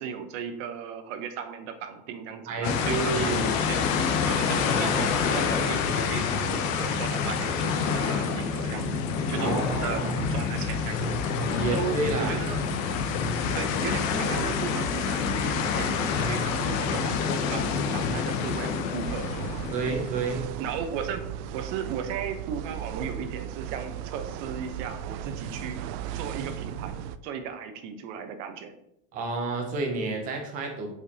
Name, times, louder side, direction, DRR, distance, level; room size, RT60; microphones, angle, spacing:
voice 1, 0.0-3.8 4.3-9.0 9.3-11.1 11.7-12.6 13.6-19.6 20.6-21.2 21.5-25.8 26.1-26.9 27.2-28.7, right 7 dB, 50° right, 7 dB, 0.9 m, -36 dB
voice 2, 2.5-3.5 9.4-10.3 11.5-12.8 19.7-20.5 29.1-30.9, right 3 dB, 20° right, 2 dB, 0.4 m, -30 dB
sound 1, 2.6-20.5, left 6 dB, 55° left, 0.8 m, -27 dB
sound 2, 19.0-27.2, right 10 dB, 85° right, 0.6 m, -37 dB
6.6 x 5.1 x 2.8 m, 0.77 s
supercardioid pair, 175°, 46 cm